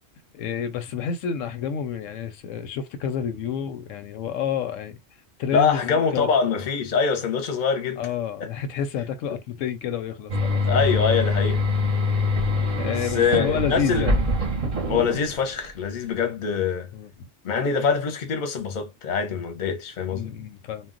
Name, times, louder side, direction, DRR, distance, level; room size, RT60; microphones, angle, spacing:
voice 1, 0.3-5.0 5.4-6.3 8.0-10.6 12.7-14.1 16.9-17.3 20.1-20.9, left 8 dB, 90° left, 1.0 m, -29 dB
voice 2, 5.5-8.1 8.4-8.5 10.7-11.6 12.8-14.1 14.9-16.9 17.4-20.3, left 6 dB, 45° left, 0.7 m, -24 dB
sound 1, 10.3-15.7, left 2 dB, 40° right, 0.6 m, -24 dB
2.3 x 2.1 x 3.7 m
omnidirectional pair, 1.3 m